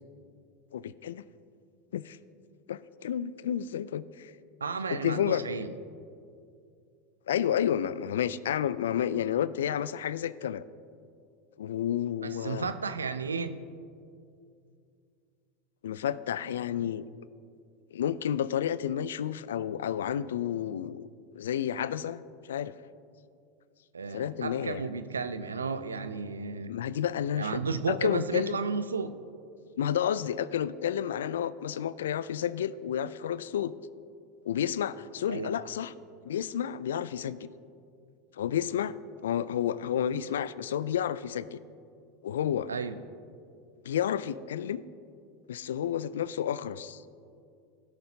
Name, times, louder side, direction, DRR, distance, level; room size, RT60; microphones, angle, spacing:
voice 1, 0.7-1.2 1.9-2.2 2.7-4.3 4.9-5.4 7.3-10.6 11.6-12.7 15.8-17.0 17.9-21.1 21.3-22.2 22.5-22.7 24.1-24.8 26.7-27.6 27.9-28.6 29.8-33.7 34.5-35.9 36.2-37.5 38.4-38.9 39.2-41.6 42.2-42.7 43.8-44.8 45.5-47.0, left 9 dB, 75° left, 18 dB, 0.3 m, -30 dB
voice 2, 4.6-5.7 12.2-13.6 23.9-26.7 27.4-29.1 35.3-35.5 42.7-43.0, right 4 dB, 90° right, 11 dB, 0.5 m, -33 dB
17.5 x 6.9 x 2.8 m, 2.4 s
hypercardioid pair, 90°, 0 cm